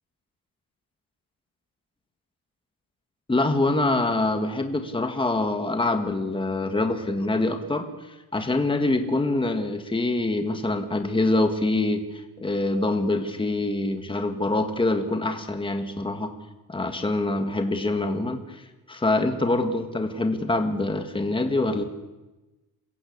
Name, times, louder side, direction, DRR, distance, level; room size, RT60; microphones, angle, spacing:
voice 1, 3.3-7.9 8.3-12.0 12.4-16.3 16.7-18.6 18.9-21.8, left 2 dB, 15° left, 6 dB, 1.8 m, -25 dB
28.0 x 15.5 x 8.6 m, 1.1 s
wide cardioid pair, 165°, 39 cm